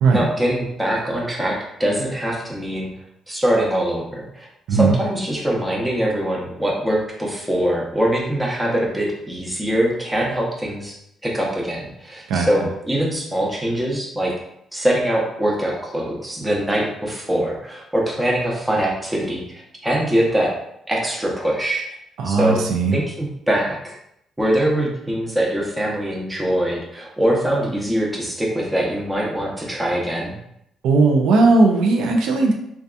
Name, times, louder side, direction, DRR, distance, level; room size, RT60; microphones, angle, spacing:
voice 1, 0.1-2.9 3.3-11.0 11.2-14.3 14.7-20.5 20.9-21.8 22.2-22.6 22.9-24.0 24.4-30.4, right 1 dB, 10° right, -2 dB, 0.7 m, -23 dB
voice 2, 22.2-23.0 30.8-32.5, right 3 dB, 85° right, 2 dB, 0.4 m, -17 dB
2.6 x 2.3 x 2.4 m, 0.78 s
cardioid pair, 90°, 0 cm